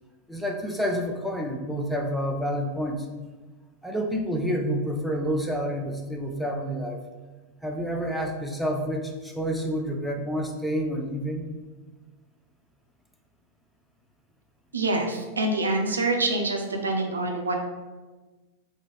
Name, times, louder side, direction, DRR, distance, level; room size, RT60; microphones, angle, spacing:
voice 1, 0.3-3.1 3.8-7.0 7.6-11.5, equal, ahead, 1 dB, 0.5 m, -29 dB
voice 2, 14.7-17.6, right 2 dB, 75° right, 3 dB, 0.5 m, -26 dB
3.7 x 2.7 x 3.4 m, 1.3 s
figure-of-eight pair, 90°, 0 cm